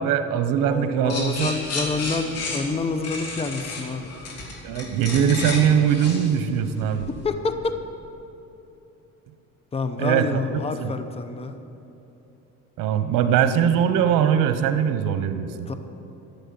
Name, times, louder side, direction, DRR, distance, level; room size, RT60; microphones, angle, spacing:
voice 1, 0.0-1.5 4.6-7.1 10.0-10.9 12.8-15.7, right 8 dB, 90° right, 9 dB, 0.9 m, -21 dB
voice 2, 0.6-4.1 7.1-7.8 9.7-11.5 15.7-15.8, left 4 dB, 20° left, 8 dB, 0.8 m, -28 dB
sound 1, 1.1-7.2, left 2 dB, 50° left, 3.1 m, -32 dB
12.0 x 8.2 x 9.7 m, 3.0 s
cardioid pair, 105°, 32 cm